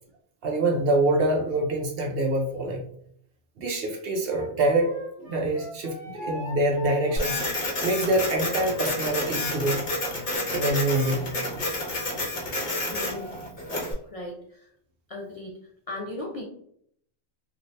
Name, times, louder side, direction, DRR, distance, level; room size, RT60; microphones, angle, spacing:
voice 1, 0.4-2.8 3.6-4.9 5.2-7.4 7.8-9.8 10.5-11.2, right 2 dB, 60° right, 1 dB, 0.7 m, -25 dB
Wind instrument woodwind instrument, 4.2-9.3, equal, 40° right, 1.1 m, -40 dB
Printer, 7.2-13.9, left 1 dB, 40° left, 0.7 m, -30 dB
voice 2, 12.9-13.3 14.1-14.7 15.1-15.5 15.9-16.4, left 2 dB, 60° left, -2 dB, 0.3 m, -36 dB
2.7 x 2.5 x 3.1 m, 0.67 s
omnidirectional pair, 1.3 m